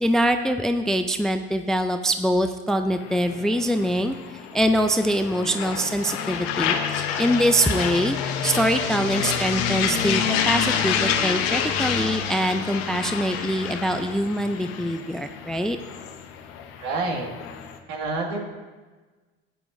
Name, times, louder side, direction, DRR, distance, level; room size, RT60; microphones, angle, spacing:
voice 1, 0.0-4.2 4.5-8.2 8.4-15.8, equal, ahead, 7 dB, 0.4 m, -24 dB
sound 1, 2.9-17.8, left 8 dB, 80° left, 1.0 m, -28 dB
voice 2, 16.8-17.3 17.9-18.4, right 3 dB, 65° right, 1 dB, 2.0 m, -27 dB
13.5 x 9.2 x 2.6 m, 1.3 s
supercardioid pair, 95°, 30 cm